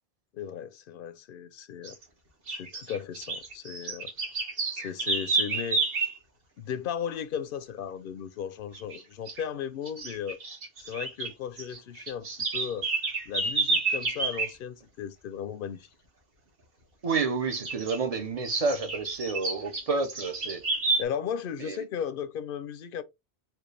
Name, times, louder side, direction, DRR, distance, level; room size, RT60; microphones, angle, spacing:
voice 1, 0.3-2.0 2.5-4.1 4.7-5.9 6.6-10.4 10.9-12.3 12.5-12.9 13.3-15.9 21.0-23.0, left 8 dB, 60° left, 0.6 m, -36 dB
sound 1, 1.8-2.0 2.5-6.2 8.7-9.0 9.3-9.4 9.9-11.3 11.6-14.5 17.5-18.0 18.4-21.0, right 3 dB, 60° right, 1.4 m, -30 dB
voice 2, 17.0-20.6 21.6-21.8, right 4 dB, 40° right, 0.6 m, -29 dB
4.4 x 2.3 x 3.2 m
omnidirectional pair, 1.1 m